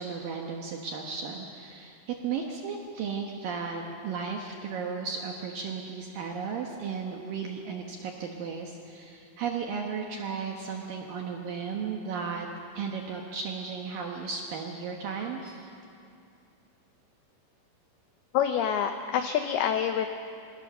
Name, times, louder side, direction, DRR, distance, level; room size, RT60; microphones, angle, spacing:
voice 1, 0.0-12.5 12.7-15.7, right 5 dB, 70° right, 1 dB, 2.1 m, -35 dB
voice 2, 18.3-20.1, left 8 dB, 85° left, 7 dB, 2.2 m, -26 dB
23.5 x 18.0 x 6.7 m, 2.6 s
omnidirectional pair, 5.5 m